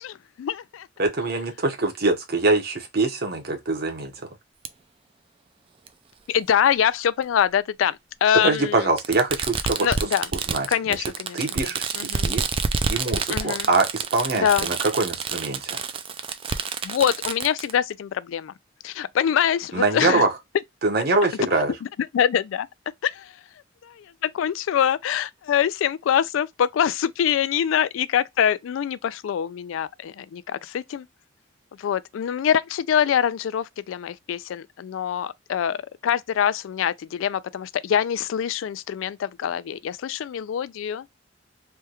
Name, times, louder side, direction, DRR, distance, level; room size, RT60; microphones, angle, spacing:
voice 1, 0.0-0.9 6.3-8.9 9.8-10.3 10.7-11.4 11.9-12.3 13.3-13.7 14.3-14.7 16.8-18.5 18.8-20.2 21.5-21.6 22.1-22.7 23.0-23.3 23.8-31.1 31.8-41.1, left 9 dB, 85° left, 0.3 m, -24 dB
voice 2, 1.0-4.1 8.4-9.9 10.3-11.0 11.3-12.5 12.9-15.8 19.7-20.3 20.8-21.7, right 3 dB, 55° right, 1.0 m, -24 dB
Fireworks, 4.6-4.7 5.9-6.0 7.2-7.3 9.0-17.7, right 5 dB, 30° right, 0.3 m, -28 dB
3.4 x 2.3 x 2.8 m
head